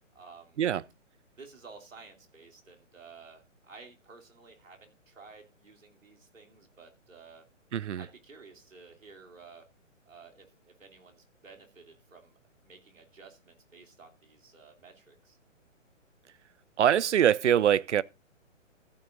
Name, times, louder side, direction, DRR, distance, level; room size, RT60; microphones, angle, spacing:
voice 1, 0.1-0.6 1.3-7.5 8.0-9.7 10.1-15.4, right 4 dB, 80° right, 2.9 m, -53 dB
voice 2, 7.7-8.0 16.8-18.0, right 10 dB, 65° right, 0.6 m, -23 dB
14.5 x 9.2 x 2.5 m
hypercardioid pair, 145°, 39 cm